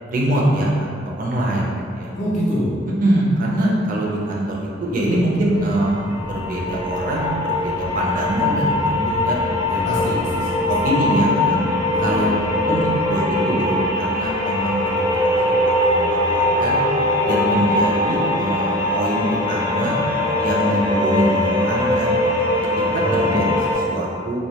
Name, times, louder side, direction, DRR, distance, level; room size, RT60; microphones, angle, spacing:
voice 1, 0.1-2.1 3.0-6.0 6.3-9.4 9.9-10.0 10.7-11.6 12.0-16.8 17.2-20.0 20.4-22.2 22.9-24.5, right 1 dB, 45° right, -4 dB, 0.4 m, -23 dB
voice 2, 2.1-2.7 8.9-10.6 11.9-12.3 17.4-17.6 23.0-23.4, equal, 35° left, -9 dB, 0.4 m, -26 dB
sound 1, 4.9-23.7, left 1 dB, 90° left, 0.6 m, -21 dB
2.1 x 2.1 x 2.7 m, 2.4 s
head